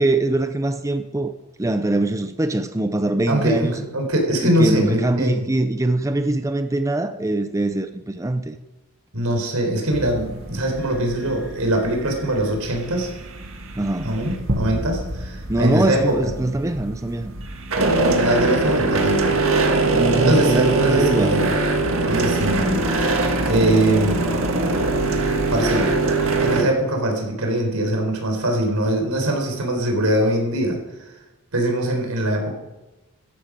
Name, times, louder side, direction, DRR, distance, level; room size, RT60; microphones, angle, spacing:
voice 1, 0.0-1.3 1.6-3.8 4.4-8.6 13.7-14.2 15.5-17.3 19.8-21.5 23.4-23.8, right 2 dB, 15° right, 9 dB, 0.5 m, -23 dB
voice 2, 3.3-5.4 9.1-13.1 14.0-16.3 18.2-19.3 20.2-21.5 22.0-22.8 23.4-24.3 25.5-25.9 26.4-31.1 31.5-32.5, right 1 dB, 80° right, 2 dB, 4.1 m, -22 dB
sound 1, 9.9-26.7, right 3 dB, 65° right, 1.8 m, -23 dB
sound 2, 14.5-17.0, right 1 dB, 45° right, 1.4 m, -30 dB
14.0 x 11.5 x 5.1 m, 1.0 s
head